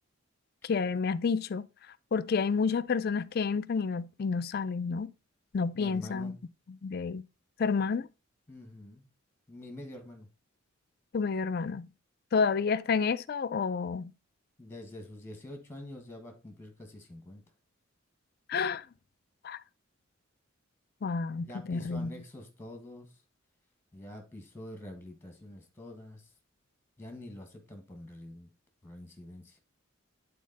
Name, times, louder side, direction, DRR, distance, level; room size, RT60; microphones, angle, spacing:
voice 1, 0.6-1.7 2.1-5.1 5.5-6.4 6.7-7.2 7.6-8.1 11.1-11.9 12.3-14.1 18.5-18.8 19.4-19.6 21.0-22.1, left 5 dB, 45° left, 0.4 m, -30 dB
voice 2, 5.7-6.4 8.5-9.1 9.5-10.3 14.6-17.4 21.3-23.1 23.9-26.3 27.0-28.5 28.8-29.6, left 1 dB, 10° left, 1.5 m, -46 dB
8.6 x 4.1 x 3.9 m
head